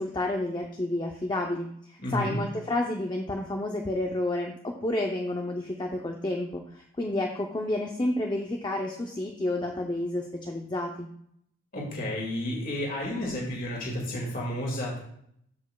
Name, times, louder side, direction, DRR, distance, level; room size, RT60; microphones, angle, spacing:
voice 1, 0.0-11.1, left 1 dB, 20° left, 2 dB, 0.5 m, -30 dB
voice 2, 2.0-2.4 11.7-15.0, left 1 dB, 40° left, -3 dB, 1.9 m, -31 dB
13.5 x 5.2 x 2.2 m, 0.69 s
head